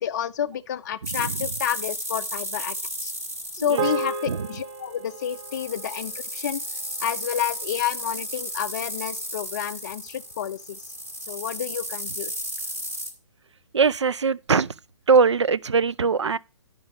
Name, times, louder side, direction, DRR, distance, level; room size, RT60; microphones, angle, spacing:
voice 1, 0.0-2.8 3.0-3.1 3.5-10.9 11.3-12.3, left 9 dB, 40° left, 0.4 m, -30 dB
sound 1, 1.0-13.1, equal, 15° right, 1.5 m, -34 dB
sound 2, 3.8-8.3, right 4 dB, 30° right, 0.9 m, -34 dB
voice 2, 13.7-14.7 15.1-16.4, right 5 dB, 75° right, 0.4 m, -21 dB
11.0 x 5.1 x 4.9 m
figure-of-eight pair, 130°, 15 cm